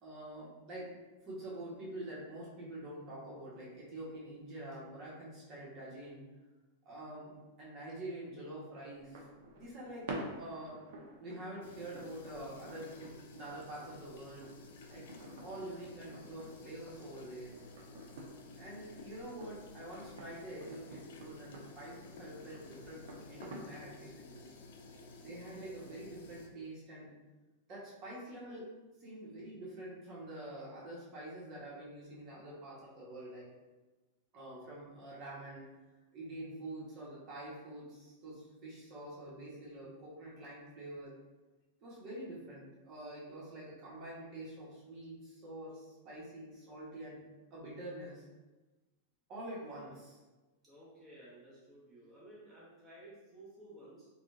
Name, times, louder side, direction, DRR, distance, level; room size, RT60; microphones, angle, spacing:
voice 1, 0.0-0.9 1.2-6.2 6.8-9.2 9.5-10.8 11.2-14.5 14.9-15.0 15.4-17.5 18.5-24.5 25.2-27.1 27.7-28.7 29.0-33.5 34.3-35.7 36.1-41.1 41.8-48.2 49.3-50.2, right 1 dB, 40° right, -6 dB, 1.3 m, -46 dB
sound 1, 8.9-24.0, right 1 dB, 70° right, 0.6 m, -50 dB
sound 2, 11.6-26.5, left 3 dB, 70° left, 0.5 m, -53 dB
voice 2, 49.3-50.0 50.6-54.1, right 1 dB, 5° right, -10 dB, 1.1 m, -55 dB
3.5 x 2.4 x 2.6 m, 1.2 s
hypercardioid pair, 125°, 0 cm